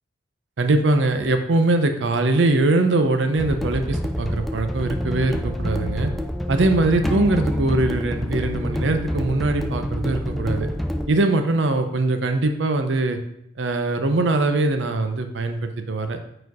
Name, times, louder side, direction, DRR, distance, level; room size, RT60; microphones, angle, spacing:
voice 1, 0.6-6.1 6.5-10.7 11.1-13.2 13.6-16.2, right 2 dB, 80° right, 7 dB, 0.6 m, -22 dB
sound 1, 3.3-11.1, equal, ahead, 0.3 m, -27 dB
4.5 x 4.3 x 4.7 m, 0.79 s
head